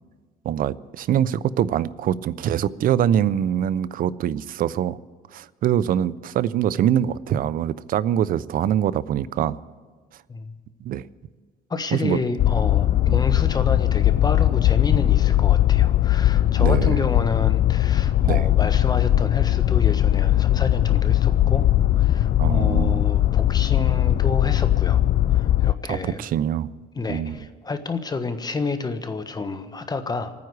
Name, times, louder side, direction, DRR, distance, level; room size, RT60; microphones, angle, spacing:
voice 1, 0.4-5.0 5.3-9.6 10.8-11.0 11.9-12.2 13.1-13.2 16.6-17.0 18.2-18.4 22.4-23.0 25.9-26.7 27.1-27.4, right 10 dB, 55° right, 18 dB, 0.6 m, -24 dB
voice 2, 11.7-21.7 21.9-25.0 25.3-26.3 27.0-30.3, left 3 dB, 25° left, 9 dB, 1.1 m, -29 dB
sound 1, 12.4-25.7, left 13 dB, 50° left, 0.4 m, -19 dB
28.0 x 9.5 x 4.8 m, 1.5 s
cardioid pair, 110°, 17 cm